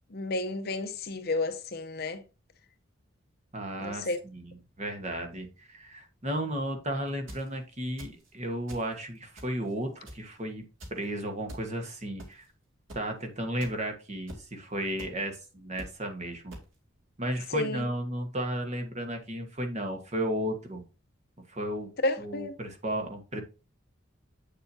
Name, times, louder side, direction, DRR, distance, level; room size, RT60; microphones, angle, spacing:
voice 1, 0.1-2.2 3.8-4.2 17.5-17.9 22.0-22.5, left 2 dB, 50° left, 0.8 m, -31 dB
voice 2, 3.5-10.6 10.9-12.4 12.9-16.6 17.2-20.8 21.5-21.9 22.2-23.4, right 1 dB, 35° right, 1.4 m, -34 dB
sound 1, 7.1-7.5 8.0-8.3 8.7-8.9 9.4-9.7 10.1-10.3 10.8-11.0 11.5-11.6 12.2-12.5 12.9-13.0 13.6-13.7 14.3-14.4 15.0-15.1 15.8-15.9 16.5-16.6, equal, 75° right, 2.4 m, -43 dB
7.7 x 6.9 x 2.8 m
head